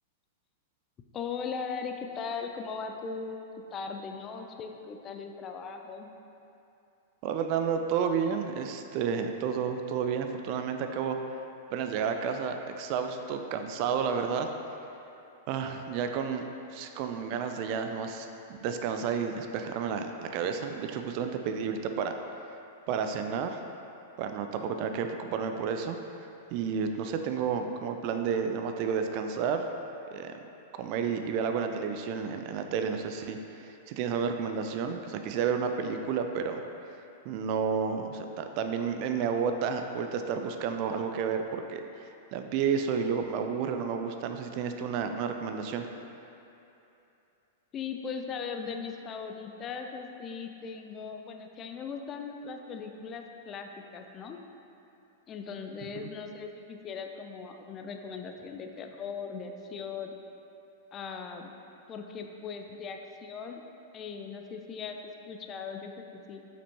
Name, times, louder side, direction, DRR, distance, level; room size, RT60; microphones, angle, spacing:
voice 1, 1.1-3.4 3.7-6.1 47.7-54.4 55.3-60.2 60.9-61.5 61.9-63.6 63.9-66.4, left 5 dB, 30° left, 4 dB, 0.5 m, -39 dB
voice 2, 7.2-11.2 11.7-14.5 15.5-22.1 22.9-23.6 24.2-26.0 26.5-29.7 30.1-30.3 30.7-36.6 37.2-45.8 55.9-56.1, right 6 dB, 45° right, 6 dB, 0.4 m, -31 dB
6.8 x 6.0 x 2.9 m, 2.8 s
figure-of-eight pair, 100°, 0 cm